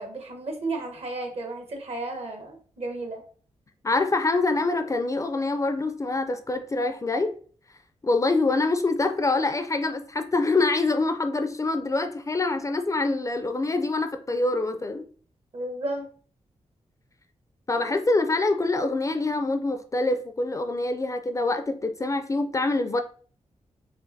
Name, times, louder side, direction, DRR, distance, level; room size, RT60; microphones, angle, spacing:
voice 1, 0.0-3.2 15.5-16.1, right 2 dB, 60° right, 1.1 m, -33 dB
voice 2, 3.8-7.3 8.0-15.0 17.7-23.0, left 2 dB, 25° left, 0.4 m, -25 dB
5.6 x 2.5 x 2.6 m
wide cardioid pair, 115°, 12 cm